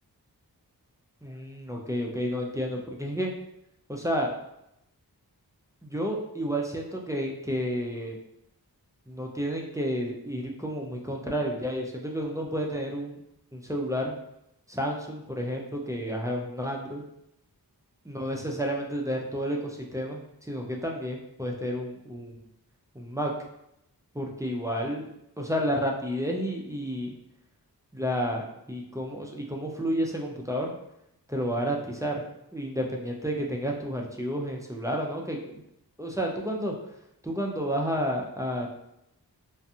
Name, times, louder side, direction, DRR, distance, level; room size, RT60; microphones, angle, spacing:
voice 1, 1.2-3.3 3.9-4.3 5.8-8.2 9.1-13.2 13.5-14.2 14.7-17.0 18.0-22.4 22.9-23.3 24.1-25.1 25.4-27.1 27.9-30.7 31.3-32.2 32.5-35.6 36.0-36.7 37.2-38.7, equal, 10° right, -1 dB, 0.4 m, -31 dB
2.5 x 2.2 x 2.7 m, 0.82 s
wide cardioid pair, 60°, 39 cm